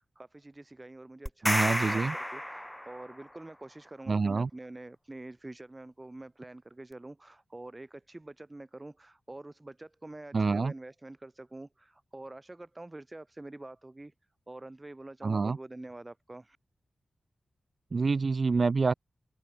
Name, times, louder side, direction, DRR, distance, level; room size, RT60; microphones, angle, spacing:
voice 1, 0.0-14.1 14.5-16.6, right 2 dB, 20° right, 4.3 m, -46 dB
sound 1, 1.3-3.2, equal, 5° left, 0.4 m, -31 dB
voice 2, 1.4-2.1 4.1-4.5 10.3-10.7 15.2-15.6 17.9-18.9, right 4 dB, 45° right, 1.1 m, -27 dB
open air
wide cardioid pair, 110°, 0 cm